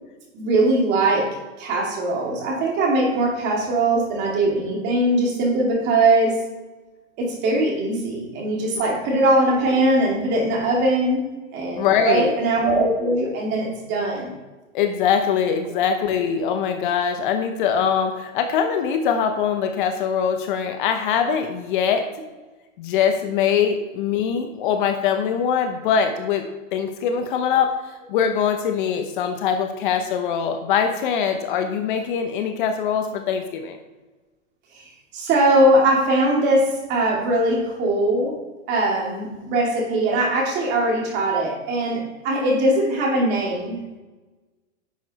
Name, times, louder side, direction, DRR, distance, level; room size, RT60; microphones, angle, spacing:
voice 1, 0.3-6.4 7.2-11.2 11.5-14.3 34.7-38.3 38.7-44.0, right 1 dB, 25° right, -1 dB, 2.5 m, -21 dB
voice 2, 11.8-12.3 14.7-22.1 22.8-33.8, left 7 dB, 40° left, 6 dB, 0.9 m, -22 dB
10.5 x 7.0 x 4.2 m, 1.2 s
hypercardioid pair, 155°, 38 cm